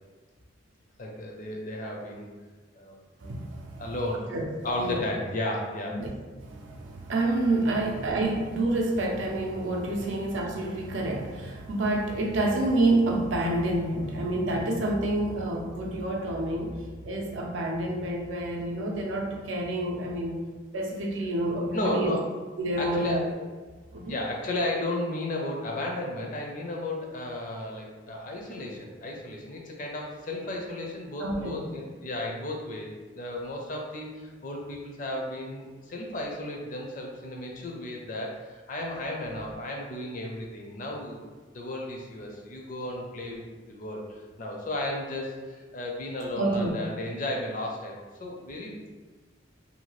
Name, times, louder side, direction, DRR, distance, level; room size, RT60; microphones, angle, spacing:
voice 1, 1.0-2.3 2.7-3.0 3.8-4.3 4.6-6.0 7.3-7.4 10.0-10.1 21.7-22.3 22.8-23.3 24.0-41.2 41.5-43.4 43.7-48.9, left 1 dB, 40° left, 0 dB, 0.5 m, -34 dB
voice 2, 3.2-3.8 4.3-4.5 4.8-5.0 5.9-6.1 6.4-20.4 20.7-22.1 22.6-23.3 23.9-24.1 31.2-31.5 46.4-46.7, right 2 dB, 70° right, 0 dB, 0.5 m, -28 dB
2.7 x 2.3 x 3.0 m, 1.4 s
head